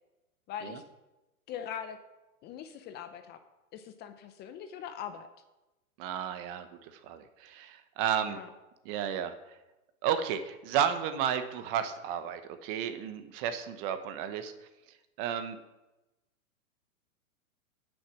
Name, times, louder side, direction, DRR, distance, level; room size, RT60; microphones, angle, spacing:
voice 1, 0.5-0.8 1.5-2.0 2.4-3.4 3.7-5.3 8.2-8.5, left 9 dB, 25° left, 9 dB, 0.7 m, -41 dB
voice 2, 6.0-8.4 8.8-9.3 10.0-14.5 15.2-15.6, right 9 dB, 40° right, 10 dB, 1.1 m, -32 dB
9.3 x 8.7 x 6.2 m, 1.0 s
hypercardioid pair, 130°, 43 cm